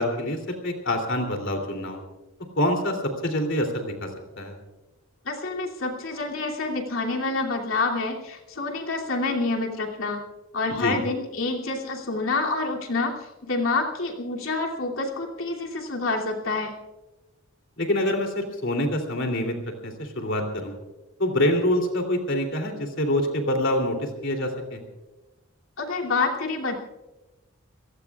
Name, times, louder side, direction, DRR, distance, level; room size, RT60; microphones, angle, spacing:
voice 1, 0.0-2.0 2.6-3.0 3.2-4.1 4.4-4.5 10.8-11.0 17.8-19.5 19.8-20.7 21.2-24.8, left 1 dB, 60° left, 4 dB, 3.1 m, -26 dB
voice 2, 5.2-10.2 10.5-16.7 25.8-26.7, left 3 dB, 80° left, -1 dB, 2.9 m, -27 dB
28.5 x 18.0 x 2.4 m, 1.1 s
head